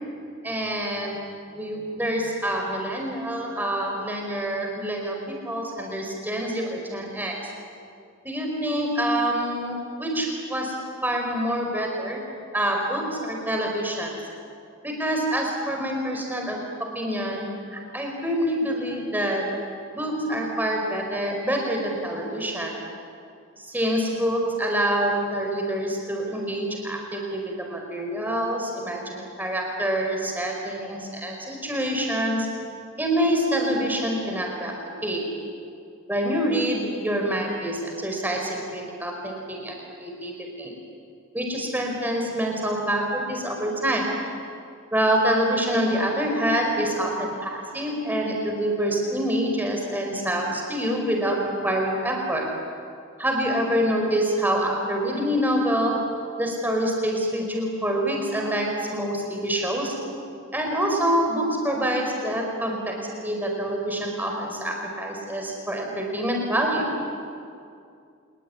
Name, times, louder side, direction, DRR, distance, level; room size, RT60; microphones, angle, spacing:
voice 1, 0.4-1.2 1.5-7.3 8.2-10.8 11.0-12.2 12.5-14.1 14.8-16.6 17.0-19.4 19.9-22.7 23.6-32.5 33.0-34.7 35.0-35.2 36.1-40.7 41.3-44.0 44.9-51.4 51.6-52.5 53.2-55.9 56.4-59.9 60.5-66.9, equal, 10° right, 1 dB, 5.3 m, -26 dB
28.0 x 21.0 x 9.8 m, 2.4 s
head